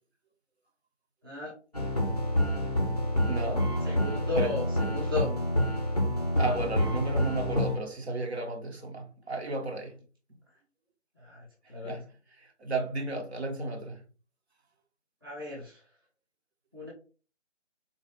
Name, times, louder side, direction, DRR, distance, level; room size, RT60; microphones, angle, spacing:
sound 1, 1.7-7.8, left 1 dB, 35° left, 0.4 m, -28 dB
voice 1, 3.3-3.7 4.4-4.5 6.3-10.0 11.8-12.0 12.4-14.0, right 2 dB, 60° right, 0.9 m, -33 dB
voice 2, 3.8-4.6 4.9-5.3 11.2-12.0 15.2-15.8 16.7-16.9, left 3 dB, 20° right, 0.6 m, -35 dB
3.8 x 2.3 x 3.1 m
figure-of-eight pair, 155°, 37 cm